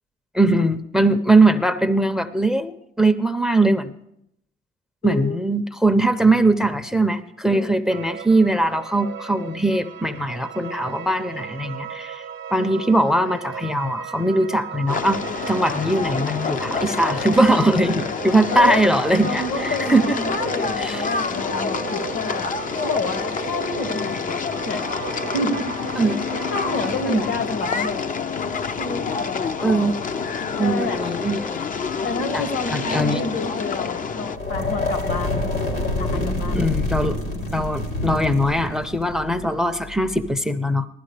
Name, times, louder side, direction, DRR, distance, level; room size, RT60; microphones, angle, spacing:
voice 1, 0.3-3.9 5.0-12.2 12.5-20.2 20.8-21.0 26.0-26.2 27.0-27.3 29.6-30.0 30.6-31.6 32.3-32.4 32.7-33.2 36.5-37.2 37.5-40.9, right 1 dB, ahead, 11 dB, 0.6 m, -20 dB
voice 2, 5.0-5.4 7.5-7.8 18.5-18.9 19.2-22.5 22.8-24.8 25.2-26.0 26.5-28.1 28.8-29.8 30.6-31.0 32.0-35.5 36.0-36.6, left 3 dB, 75° left, 6 dB, 2.1 m, -29 dB
sound 1, 7.9-27.0, right 8 dB, 65° right, 0.8 m, -36 dB
sound 2, 14.9-34.4, left 5 dB, 40° left, 0.6 m, -28 dB
sound 3, 34.3-40.3, left 2 dB, 90° left, 4.6 m, -26 dB
15.5 x 12.5 x 3.3 m, 0.75 s
cardioid pair, 90°, 20 cm